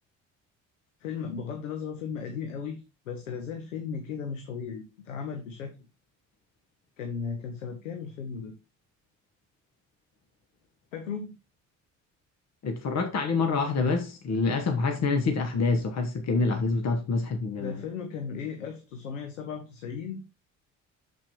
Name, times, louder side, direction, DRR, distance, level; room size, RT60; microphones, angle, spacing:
voice 1, 1.0-5.8 7.0-8.5 10.9-11.3 17.6-20.2, left 6 dB, 85° left, 1.1 m, -36 dB
voice 2, 12.6-17.8, left 4 dB, 45° left, 1.3 m, -26 dB
8.8 x 7.5 x 3.1 m
figure-of-eight pair, 50°, 38 cm